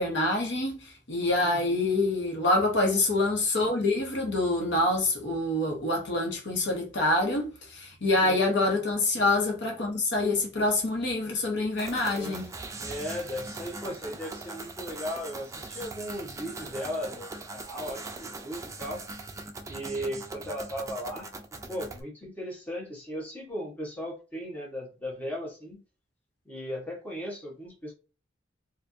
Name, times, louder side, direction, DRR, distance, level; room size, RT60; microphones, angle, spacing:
voice 1, 0.0-12.5, left 2 dB, 65° left, 1.0 m, -26 dB
voice 2, 1.4-1.9 8.2-8.4 12.1-12.5 12.8-19.1 19.7-25.8 26.4-27.9, equal, 10° left, 1.3 m, -37 dB
sound 1, 11.8-22.0, right 3 dB, 15° right, 0.4 m, -41 dB
4.5 x 2.5 x 2.7 m
head